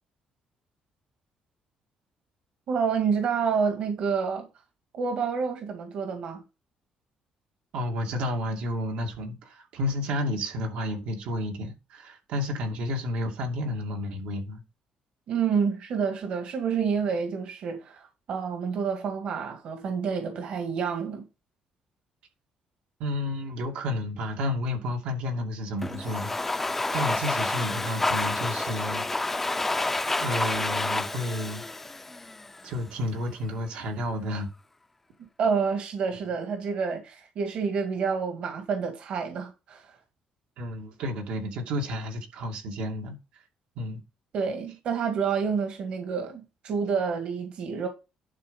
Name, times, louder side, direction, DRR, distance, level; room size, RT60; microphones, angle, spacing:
voice 1, 2.7-4.5 4.9-6.4 15.3-21.2 35.4-40.0 44.3-47.9, right 6 dB, 60° right, 1.9 m, -28 dB
voice 2, 7.7-14.6 23.0-29.1 30.2-31.6 32.6-34.5 40.6-43.4 43.8-44.0, left 1 dB, 85° right, 2.4 m, -31 dB
Domestic sounds home sounds, 25.8-32.7, left 2 dB, 10° left, 0.5 m, -29 dB
11.5 x 4.2 x 5.3 m
cardioid pair, 145°, 2 cm